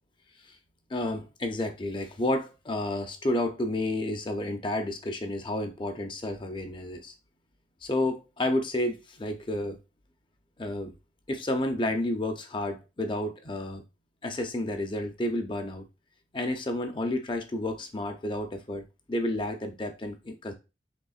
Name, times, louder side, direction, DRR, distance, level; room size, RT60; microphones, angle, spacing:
voice 1, 0.9-7.1 7.8-9.8 10.6-11.0 11.3-13.8 14.2-15.8 16.3-20.5, left 1 dB, 25° left, 0.6 m, -31 dB
5.3 x 3.5 x 2.4 m
head